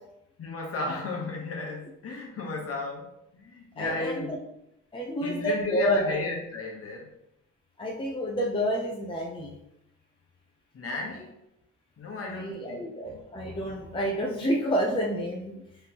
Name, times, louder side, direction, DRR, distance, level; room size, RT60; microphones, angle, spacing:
voice 1, 0.4-3.1 3.3-4.4 5.2-7.1 10.7-11.3 12.0-13.2, left 3 dB, 50° left, 0 dB, 1.1 m, -34 dB
voice 2, 3.8-4.2 4.9-6.2 7.8-9.5 12.2-15.5, equal, 15° left, -1 dB, 0.7 m, -29 dB
3.9 x 3.3 x 2.9 m, 0.83 s
cardioid pair, 90°, 30 cm